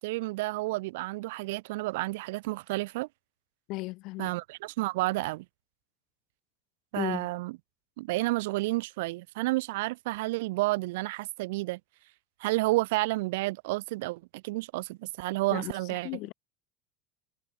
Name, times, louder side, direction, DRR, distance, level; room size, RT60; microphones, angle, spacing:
voice 1, 0.0-3.1 4.2-5.4 6.9-7.6 8.0-11.8 12.4-16.1, right 21 dB, 85° right, 0.3 m, -30 dB
voice 2, 3.7-4.3 7.0-7.3 15.5-16.3, left 22 dB, 55° left, 1.2 m, -36 dB
supercardioid pair, 140°, 0 cm